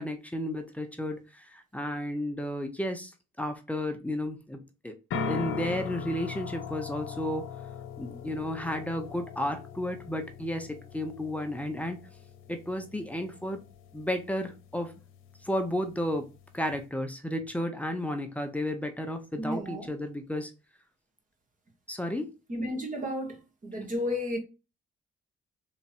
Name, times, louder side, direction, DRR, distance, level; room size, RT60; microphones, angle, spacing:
voice 1, 0.0-3.1 3.4-5.0 5.3-7.5 8.0-12.0 12.5-13.6 13.9-14.9 15.4-16.3 16.5-20.5 21.9-22.4, left 1 dB, 5° left, 0.8 m, -33 dB
sound 1, 5.1-16.9, left 5 dB, 85° left, 0.7 m, -40 dB
voice 2, 19.4-19.9 22.5-24.4, left 1 dB, 40° right, 1.6 m, -33 dB
3.5 x 2.9 x 4.3 m
cardioid pair, 90°, 20 cm